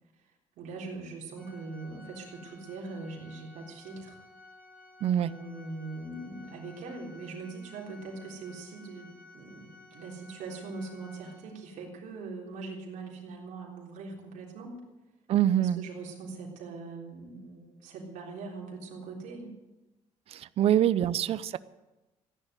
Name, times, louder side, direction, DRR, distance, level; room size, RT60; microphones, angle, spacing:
voice 1, 0.6-4.2 5.2-14.8 15.6-19.5 20.6-20.7, right 3 dB, 80° right, -2 dB, 3.7 m, -42 dB
Organ, 1.3-11.9, left 3 dB, 10° left, 3.9 m, -54 dB
voice 2, 5.0-5.4 15.3-15.9 20.3-21.6, right 11 dB, 50° right, 17 dB, 0.5 m, -25 dB
15.5 x 11.0 x 8.1 m, 1.0 s
cardioid pair, 155°, 13 cm